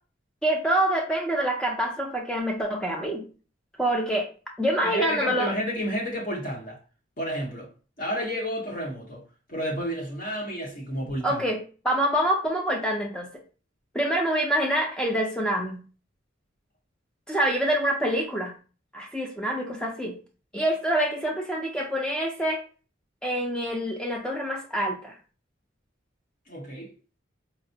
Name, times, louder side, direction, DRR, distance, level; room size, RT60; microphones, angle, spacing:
voice 1, 0.4-3.3 3.8-4.3 4.6-5.5 11.2-13.3 13.9-15.8 17.3-18.5 18.9-20.2 20.5-22.6 23.2-25.2, right 1 dB, 5° left, 0.4 m, -26 dB
voice 2, 4.8-6.8 7.2-7.7 8.0-9.2 9.5-11.4 26.5-26.9, equal, 45° left, 0.8 m, -31 dB
4.2 x 2.0 x 2.6 m
head